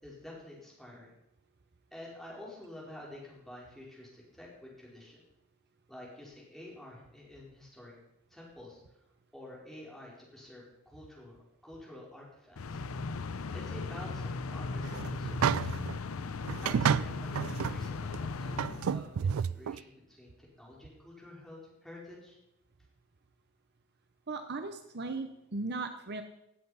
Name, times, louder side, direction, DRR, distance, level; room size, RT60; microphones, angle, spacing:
voice 1, 0.0-1.1 1.9-5.2 5.9-7.9 8.3-8.8 9.3-11.4 11.6-12.8 13.5-15.8 16.6-22.4, left 1 dB, ahead, -4 dB, 4.5 m, -49 dB
sound 1, 12.6-19.4, left 4 dB, 80° left, 0.6 m, -37 dB
sound 2, 14.8-16.0 16.5-17.8 18.1-18.2 18.6-19.8, right 7 dB, 85° right, 0.4 m, -30 dB
voice 2, 24.3-26.2, right 3 dB, 55° right, 7 dB, 0.9 m, -37 dB
17.5 x 7.7 x 5.7 m, 0.86 s
head